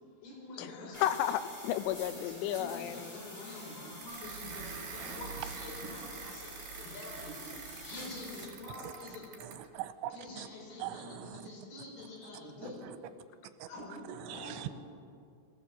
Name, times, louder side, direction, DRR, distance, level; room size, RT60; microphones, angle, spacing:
voice 1, 0.2-1.0 2.1-7.4 7.8-9.3 10.1-12.8 13.7-14.7, left 2 dB, 55° left, 6.9 m, -46 dB
sound 1, 0.9-8.4, equal, 15° left, 2.9 m, -48 dB
voice 2, 1.0-3.2, left 11 dB, 90° left, 3.4 m, -33 dB
sound 2, 4.0-9.7, right 5 dB, 60° right, 4.6 m, -46 dB
voice 3, 9.4-10.5 10.8-11.4 12.6-13.0 13.6-13.7 14.1-14.7, right 12 dB, 85° right, 3.2 m, -42 dB
22.5 x 16.0 x 8.0 m
omnidirectional pair, 5.5 m